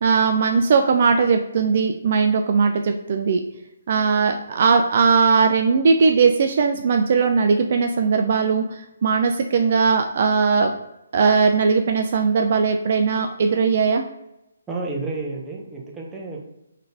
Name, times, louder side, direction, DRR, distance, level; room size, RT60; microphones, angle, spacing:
voice 1, 0.0-3.4 3.9-10.7 11.1-14.0, right 5 dB, 50° right, 5 dB, 0.3 m, -19 dB
voice 2, 14.7-16.4, right 3 dB, 10° right, -3 dB, 0.7 m, -30 dB
3.8 x 2.7 x 3.3 m, 0.89 s
figure-of-eight pair, 145°, 0 cm